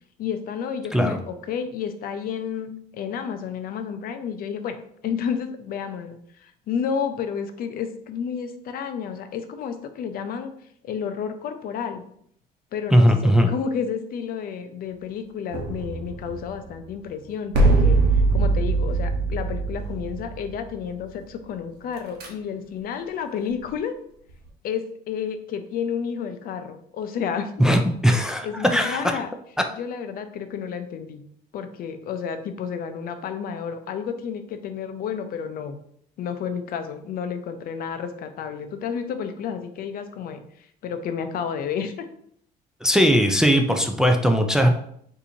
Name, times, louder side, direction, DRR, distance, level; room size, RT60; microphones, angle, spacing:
voice 1, 0.2-4.8 5.0-10.5 10.8-12.0 12.7-18.1 18.3-23.9 24.6-27.5 28.4-29.3 29.8-31.3 31.5-35.8 36.2-42.1, left 7 dB, 60° left, 8 dB, 0.5 m, -31 dB
voice 2, 12.9-13.5 27.6-29.2 42.8-44.7, equal, 5° right, 4 dB, 0.3 m, -19 dB
sound 1, 15.5-16.8 17.5-20.9 22.0-22.3, right 3 dB, 70° right, 1.0 m, -22 dB
4.2 x 2.7 x 2.7 m, 0.67 s
cardioid pair, 110°, 17 cm